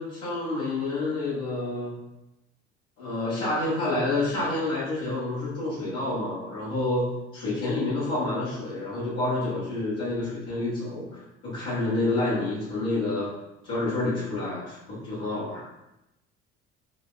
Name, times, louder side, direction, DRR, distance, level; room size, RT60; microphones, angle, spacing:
voice 1, 0.0-1.9 3.0-13.3 13.6-15.6, left 2 dB, 85° left, -11 dB, 1.4 m, -28 dB
4.6 x 2.0 x 2.3 m, 0.92 s
hypercardioid pair, 60°, 33 cm